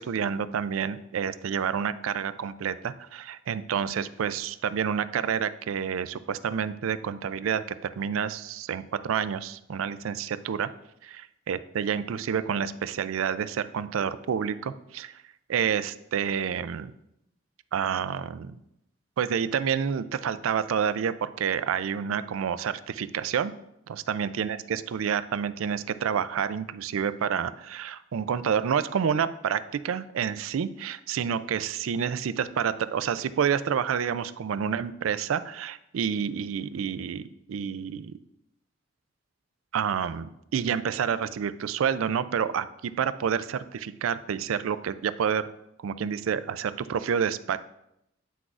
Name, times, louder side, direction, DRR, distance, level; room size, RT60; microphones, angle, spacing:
voice 1, 0.0-10.7 11.0-11.2 11.5-15.2 15.5-16.9 17.7-18.6 19.2-23.5 23.9-37.2 37.5-38.2 39.7-45.5 45.8-47.6, right 7 dB, 90° right, 14 dB, 0.4 m, -29 dB
9.1 x 6.0 x 2.4 m, 0.81 s
head